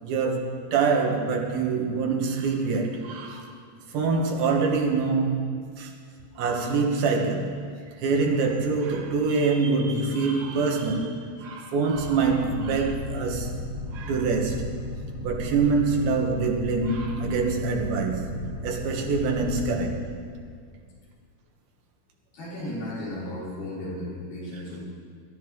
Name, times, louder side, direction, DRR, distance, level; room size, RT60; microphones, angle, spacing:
voice 1, 0.0-3.5 3.9-5.9 6.4-7.6 8.0-13.5 13.9-14.7 15.2-18.3 18.6-20.0, right 4 dB, 85° right, 1 dB, 3.4 m, -25 dB
Boat Water vehicle, 11.9-19.9, left 1 dB, 30° right, 2.6 m, -35 dB
voice 2, 22.3-24.8, left 1 dB, 90° left, -9 dB, 7.0 m, -34 dB
24.0 x 12.5 x 3.9 m, 2.1 s
omnidirectional pair, 4.2 m